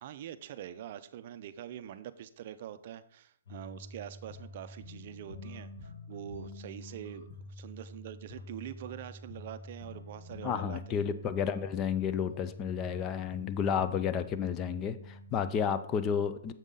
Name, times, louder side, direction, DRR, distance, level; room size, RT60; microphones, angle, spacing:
voice 1, 0.0-11.0, right 10 dB, 45° right, 12 dB, 0.4 m, -44 dB
sound 1, 3.5-15.5, left 2 dB, 60° left, 1.9 m, -47 dB
voice 2, 10.4-16.5, left 7 dB, 20° left, 12 dB, 0.4 m, -31 dB
7.2 x 5.4 x 3.8 m, 0.63 s
hypercardioid pair, 150°, 0 cm